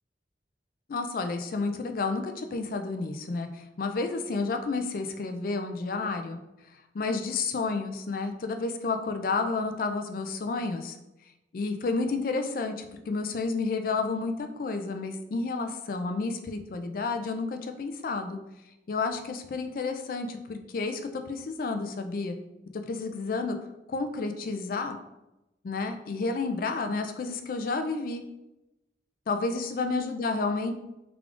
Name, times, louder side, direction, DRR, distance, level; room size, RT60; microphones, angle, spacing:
voice 1, 0.9-6.4 6.9-11.0 11.5-18.4 18.9-22.4 22.7-23.6 23.9-25.0 25.6-28.2 29.3-30.8, left 3 dB, 50° left, 6 dB, 0.3 m, -31 dB
3.5 x 2.4 x 3.6 m, 0.94 s
head